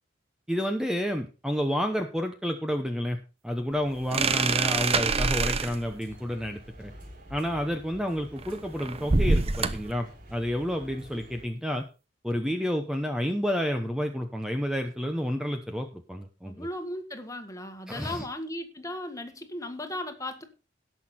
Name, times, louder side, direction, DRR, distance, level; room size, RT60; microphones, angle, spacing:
voice 1, 0.5-3.2 3.4-6.9 7.3-11.9 12.2-16.7 17.9-18.3, equal, 5° right, 5 dB, 0.9 m, -30 dB
sound 1, 3.7-11.5, equal, 50° right, 3.5 m, -49 dB
sound 2, 4.1-5.8 8.4-9.9, right 4 dB, 35° right, 0.7 m, -25 dB
voice 2, 16.5-20.4, left 1 dB, 20° left, 7 dB, 1.6 m, -36 dB
17.5 x 6.2 x 4.2 m, 0.32 s
head